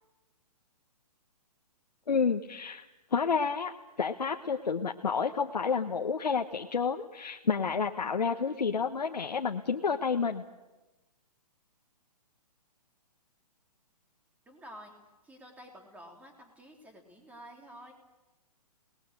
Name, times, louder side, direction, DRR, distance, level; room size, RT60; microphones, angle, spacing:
voice 1, 2.1-3.7 4.0-10.4, left 5 dB, 90° left, 4 dB, 1.2 m, -30 dB
voice 2, 14.5-14.9 15.2-17.9, equal, 5° right, 3 dB, 3.5 m, -50 dB
29.5 x 19.5 x 6.8 m, 1.1 s
hypercardioid pair, 140°, 21 cm